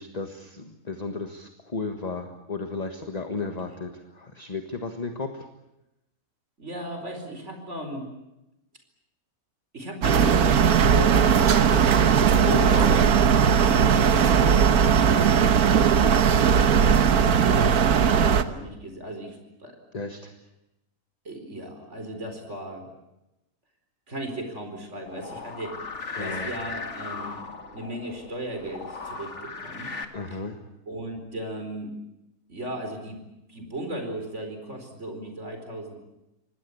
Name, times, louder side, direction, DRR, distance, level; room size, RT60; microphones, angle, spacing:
voice 1, 0.0-5.5 12.4-13.0 19.9-20.3 26.1-26.5 30.1-30.6, left 3 dB, 25° left, 6 dB, 1.6 m, -33 dB
voice 2, 6.6-8.1 9.7-12.3 13.9-16.1 17.1-19.7 21.2-22.9 24.1-25.9 26.2-27.4 27.7-29.9 30.3-30.4 30.9-31.9 32.5-33.2 33.5-36.0, right 1 dB, 50° right, 5 dB, 4.7 m, -36 dB
sound 1, 10.0-18.4, right 7 dB, 90° right, 1.6 m, -19 dB
sound 2, 25.1-30.1, left 4 dB, 50° left, 2.2 m, -37 dB
26.0 x 19.5 x 8.5 m, 0.92 s
omnidirectional pair, 1.5 m